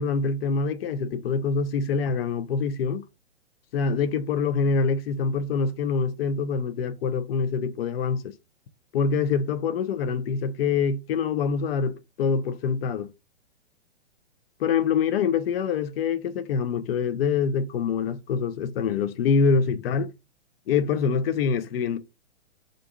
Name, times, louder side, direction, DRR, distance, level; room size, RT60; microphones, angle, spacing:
voice 1, 0.0-3.0 3.7-8.3 8.9-13.1 14.6-20.1 20.7-22.0, left 5 dB, 60° left, 0.5 m, -25 dB
2.5 x 2.2 x 2.8 m
hypercardioid pair, 125°, 34 cm